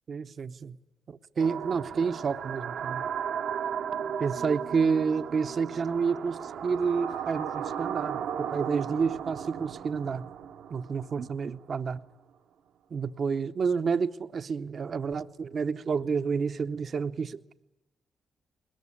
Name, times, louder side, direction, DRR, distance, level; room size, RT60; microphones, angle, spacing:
voice 1, 0.1-0.8 1.1-3.0 4.2-10.3 10.7-12.0 12.9-17.4, right 5 dB, 55° right, 0.8 m, -29 dB
sound 1, 1.4-11.5, right 8 dB, 85° right, 1.1 m, -35 dB
21.0 x 20.5 x 9.9 m
cardioid pair, 65°, 0 cm